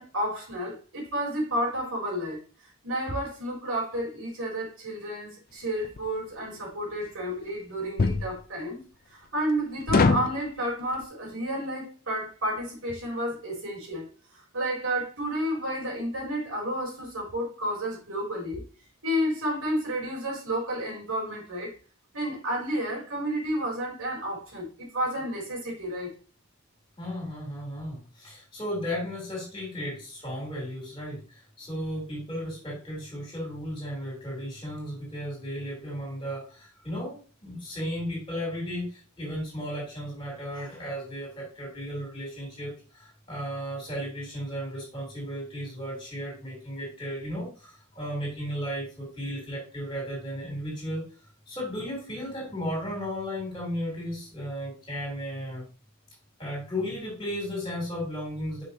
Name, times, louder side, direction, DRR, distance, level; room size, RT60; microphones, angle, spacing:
voice 1, 0.0-2.4 2.8-8.8 9.1-14.1 14.3-18.6 19.0-21.8 22.1-26.1, equal, 80° right, 3.7 m, -31 dB
sound 1, 5.8-6.1 8.0-8.3 9.9-10.4, left 4 dB, 40° left, 0.4 m, -21 dB
voice 2, 27.0-51.0 51.5-55.7 56.4-58.6, equal, 20° left, 3.4 m, -35 dB
6.4 x 5.8 x 2.8 m
head